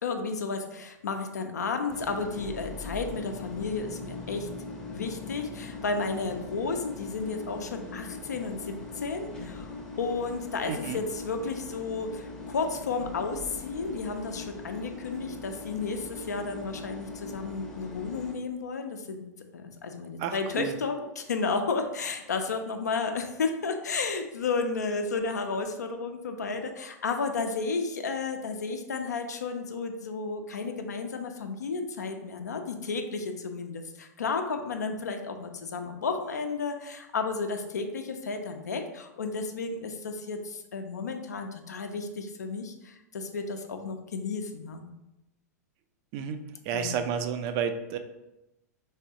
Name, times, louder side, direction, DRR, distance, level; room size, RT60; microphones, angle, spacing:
voice 1, 0.0-4.5 4.9-19.2 19.5-44.8 46.7-47.0, left 4 dB, 75° left, 5 dB, 0.5 m, -32 dB
sound 1, 1.9-18.3, left 3 dB, 10° left, 0.6 m, -41 dB
voice 2, 10.7-11.0 20.2-20.7 46.1-46.4 46.7-48.0, right 7 dB, 40° right, 8 dB, 0.3 m, -31 dB
3.7 x 3.2 x 2.7 m, 0.93 s
figure-of-eight pair, 100°, 9 cm